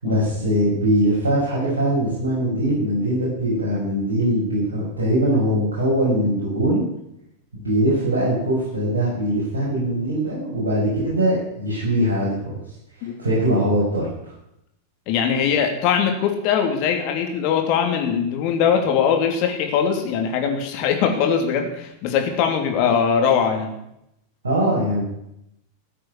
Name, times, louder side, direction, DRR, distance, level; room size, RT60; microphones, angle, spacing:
voice 1, 0.0-6.8 7.6-12.5 13.0-14.3 24.4-25.0, right 1 dB, 70° right, -8 dB, 7.0 m, -21 dB
voice 2, 15.1-23.7, left 7 dB, 45° left, 4 dB, 3.1 m, -21 dB
15.5 x 8.6 x 10.0 m, 0.81 s
figure-of-eight pair, 90°, 0 cm